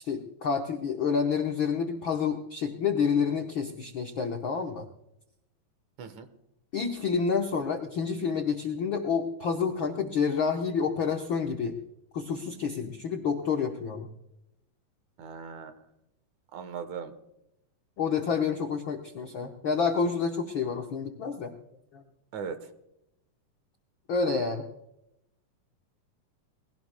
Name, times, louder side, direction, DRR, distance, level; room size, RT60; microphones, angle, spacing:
voice 1, 0.0-4.8 6.7-11.8 12.1-14.1 18.0-21.5 21.9-22.0 24.1-24.7, left 6 dB, 85° left, 3 dB, 1.1 m, -29 dB
voice 2, 15.2-15.7 16.5-17.1 22.3-22.6 24.2-24.5, right 6 dB, 65° right, 9 dB, 2.2 m, -38 dB
21.0 x 17.0 x 2.2 m, 0.84 s
omnidirectional pair, 3.9 m